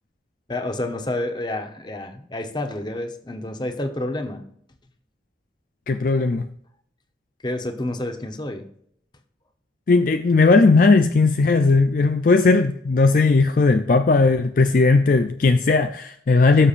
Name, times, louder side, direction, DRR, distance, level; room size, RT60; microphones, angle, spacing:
voice 1, 0.5-4.4 7.4-8.7, left 1 dB, 25° left, 0.9 m, -29 dB
voice 2, 5.9-6.5 9.9-16.7, left 3 dB, 50° left, 0.4 m, -17 dB
16.5 x 6.8 x 2.5 m
head